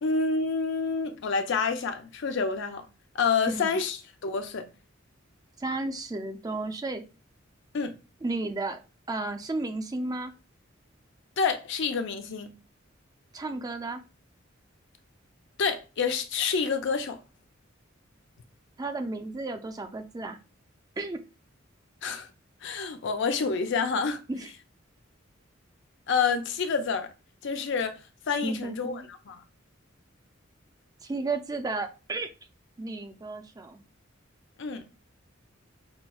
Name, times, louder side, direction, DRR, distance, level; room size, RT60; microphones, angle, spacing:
voice 1, 0.0-2.9 3.1-4.7 7.7-8.0 11.4-12.5 15.6-17.2 22.0-22.3 22.6-24.2 26.1-27.1 27.4-28.0 28.3-29.4 34.6-34.8, left 5 dB, 65° left, 0.5 m, -28 dB
voice 2, 5.6-7.0 8.2-8.8 9.1-10.3 13.3-14.0 18.8-20.4 21.0-21.2 24.3-24.5 28.4-29.1 31.0-32.3 32.8-33.8, right 2 dB, 20° right, 0.4 m, -33 dB
5.6 x 2.0 x 2.3 m
head